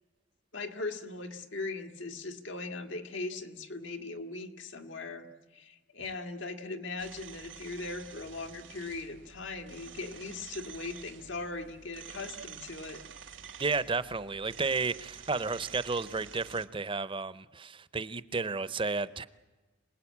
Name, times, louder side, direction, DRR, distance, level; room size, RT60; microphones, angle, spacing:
voice 1, 0.5-5.3 5.5-13.0, left 3 dB, 80° left, 2.0 m, -39 dB
sound 1, 7.0-16.7, right 7 dB, 75° right, 1.5 m, -49 dB
voice 2, 13.6-19.3, right 4 dB, 25° right, 0.7 m, -32 dB
27.0 x 19.5 x 8.6 m
head